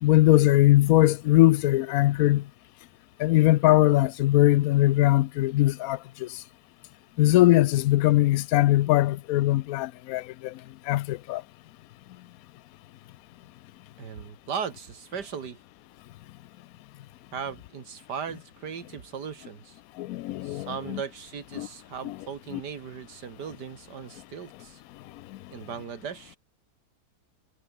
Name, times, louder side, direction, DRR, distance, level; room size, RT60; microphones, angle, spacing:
voice 1, 0.0-2.4 3.2-6.3 7.2-10.5 10.9-11.4 20.0-21.0 21.6-21.7 22.0-22.2 22.5-22.6, left 16 dB, 70° left, 0.9 m, -21 dB
voice 2, 14.0-15.6 17.3-19.8 20.4-24.8 25.5-26.4, right 7 dB, 85° right, 2.3 m, -37 dB
omnidirectional pair, 1.7 m